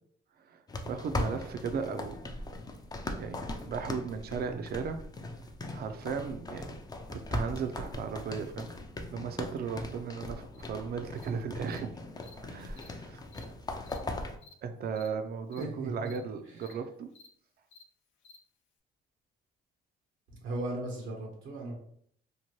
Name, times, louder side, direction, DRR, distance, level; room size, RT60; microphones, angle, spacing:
voice 1, 0.4-2.3 3.2-5.0 5.7-6.8 7.1-8.7 9.1-11.9 12.4-13.2 14.6-17.1, right 6 dB, 50° right, 8 dB, 0.4 m, -36 dB
sound 1, 0.7-14.4, left 2 dB, 20° left, 0.4 m, -39 dB
Cricket, 10.5-10.7 11.2-11.3 11.7-11.8 12.2-12.3 12.7-12.9 13.3-13.4 13.8-14.0 14.4-14.5 14.9-15.1 15.5-15.6 16.0-16.2 16.6-16.7 17.1-17.3 17.7-17.8 18.2-18.4, left 4 dB, 75° left, 0.5 m, -55 dB
voice 2, 15.6-16.1 20.4-21.8, right 1 dB, 85° right, -1 dB, 0.8 m, -36 dB
2.8 x 2.1 x 3.0 m, 0.64 s
cardioid pair, 90°, 20 cm